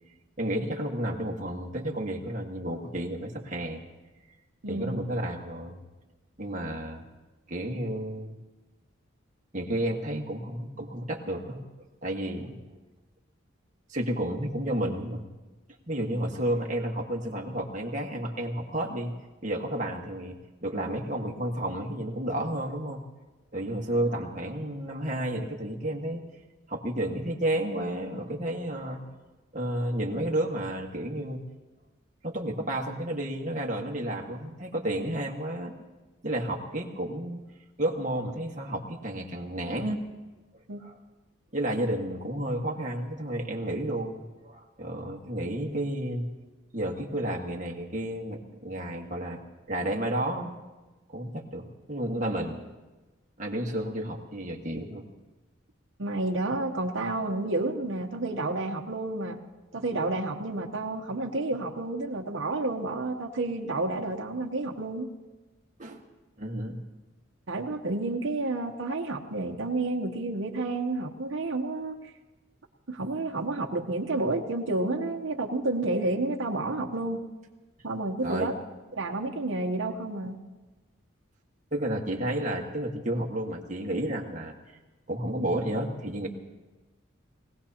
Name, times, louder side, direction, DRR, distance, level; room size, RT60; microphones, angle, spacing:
voice 1, 0.4-3.8 4.7-5.8 6.4-7.0 7.5-8.3 9.5-11.6 12.0-12.6 13.9-15.2 15.9-19.1 19.4-20.4 20.6-23.0 23.5-26.2 26.7-29.0 29.5-31.4 32.2-35.7 36.2-37.4 37.8-40.0 40.8-41.0 41.5-46.3 46.7-49.4 49.7-50.5 51.1-52.6 53.4-55.0 65.8-66.0 66.4-66.8 78.2-78.5 81.7-84.5 85.1-86.3, right 1 dB, 40° right, 0 dB, 1.5 m, -31 dB
voice 2, 4.6-5.0 40.7-40.8 56.0-59.4 59.7-65.1 67.5-72.0 72.9-77.2 77.8-78.5 78.9-80.4, right 2 dB, 70° right, 1 dB, 0.9 m, -30 dB
22.5 x 17.5 x 2.9 m, 1.2 s
head